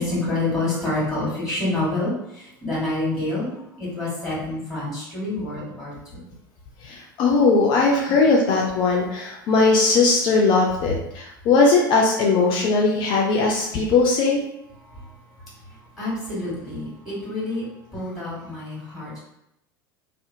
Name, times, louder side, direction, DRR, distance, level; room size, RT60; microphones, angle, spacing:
voice 1, 0.0-6.2 8.0-8.2 8.9-9.0 14.9-15.1 16.0-17.6 17.9-19.2, left 2 dB, ahead, -8 dB, 1.4 m, -28 dB
voice 2, 6.8-14.4, left 3 dB, 40° left, -2 dB, 0.4 m, -19 dB
2.7 x 2.0 x 2.5 m, 0.81 s
figure-of-eight pair, 80°, 12 cm